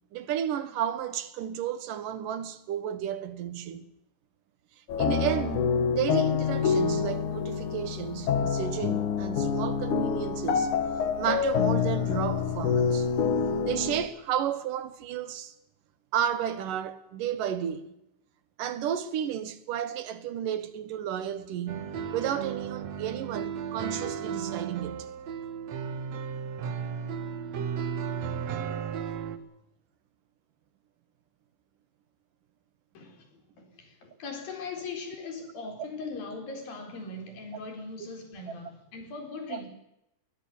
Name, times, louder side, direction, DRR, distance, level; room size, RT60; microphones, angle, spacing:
voice 1, 0.1-3.8 5.0-10.7 11.2-15.5 16.1-17.9 18.6-25.1 39.5-39.6, right 9 dB, 70° right, 2.9 m, -32 dB
sound 1, 4.9-14.1, left 6 dB, 65° left, 3.0 m, -27 dB
sound 2, 21.7-29.4, right 7 dB, 55° right, 2.4 m, -34 dB
voice 2, 32.9-39.7, left 3 dB, 90° left, 6.2 m, -40 dB
21.0 x 20.5 x 7.2 m
omnidirectional pair, 4.0 m